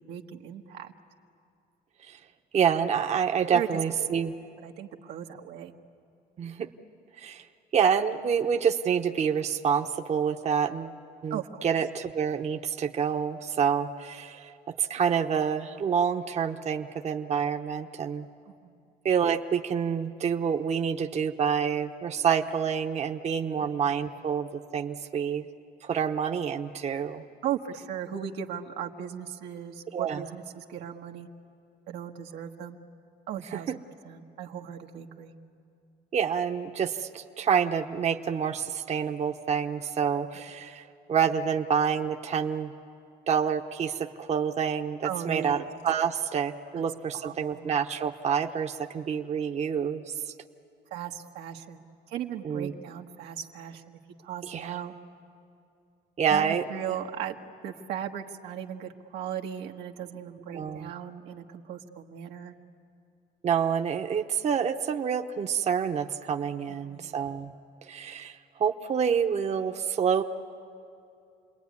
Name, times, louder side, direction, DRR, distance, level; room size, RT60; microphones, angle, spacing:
voice 1, 0.1-0.9 3.5-3.7 4.0-4.1 4.6-5.7 11.3-11.6 18.6-18.7 27.4-31.3 31.9-32.8 33.3-33.7 34.0-35.4 45.0-45.6 46.7-46.8 47.1-47.7 50.9-51.8 52.1-54.9 56.3-57.3 57.6-62.5 66.7-67.2, right 9 dB, 85° right, 3 dB, 1.4 m, -37 dB
voice 2, 2.5-4.3 6.4-6.7 7.2-7.5 7.7-10.9 11.2-14.5 14.8-18.3 19.0-25.4 25.8-27.2 29.9-30.2 33.5-33.8 36.1-42.7 43.3-50.0 52.4-52.7 54.5-54.8 56.2-56.6 60.5-60.9 63.4-67.5 67.8-70.2, right 7 dB, 40° right, 5 dB, 0.9 m, -27 dB
29.0 x 21.0 x 9.6 m, 2.5 s
cardioid pair, 110°, 17 cm